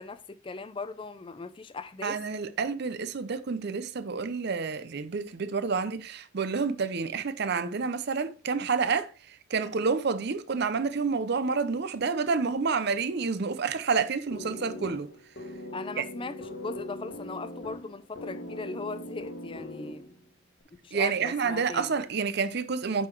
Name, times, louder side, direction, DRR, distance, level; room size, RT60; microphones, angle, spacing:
voice 1, 0.0-2.2 15.7-20.1 20.8-22.0, left 3 dB, 25° left, 0.4 m, -39 dB
voice 2, 2.0-9.1 9.5-15.1 16.0-16.1 20.9-23.1, right 5 dB, 50° right, 0.5 m, -29 dB
sound 1, 14.3-20.3, left 1 dB, 50° left, 1.1 m, -41 dB
9.2 x 3.8 x 4.5 m
head